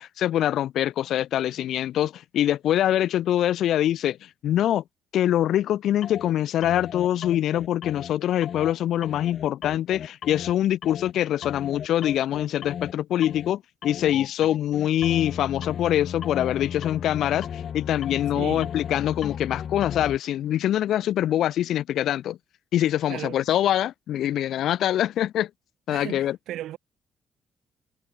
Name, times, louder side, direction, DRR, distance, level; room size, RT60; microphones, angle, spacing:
voice 1, 0.0-4.8 5.1-22.4 22.7-25.5 25.9-26.4, left 12 dB, 75° left, 0.6 m, -24 dB
sound 1, 6.0-6.3 6.6-8.1 8.4-8.7 9.0-10.5 10.8-11.1 11.4-12.9 13.2-13.5 13.8-20.2, left 8 dB, 60° left, 2.1 m, -35 dB
voice 2, 18.3-18.7 23.1-23.4 25.9-26.8, right 13 dB, 85° right, 4.8 m, -35 dB
cardioid pair, 90°, 0 cm